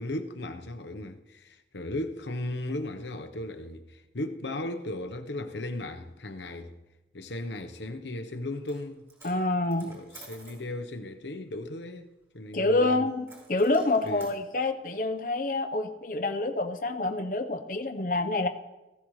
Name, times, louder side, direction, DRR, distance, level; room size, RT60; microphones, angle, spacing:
voice 1, 0.0-6.8 7.1-9.1 9.8-12.1 12.3-13.1 14.0-14.3, left 1 dB, 85° left, 1.0 m, -36 dB
Coin (dropping), 8.5-8.8 9.1-10.6 13.3-14.4, right 2 dB, 15° right, 4.5 m, -51 dB
voice 2, 9.2-9.9 12.5-18.5, left 2 dB, 50° left, 0.9 m, -27 dB
18.5 x 15.5 x 3.2 m
head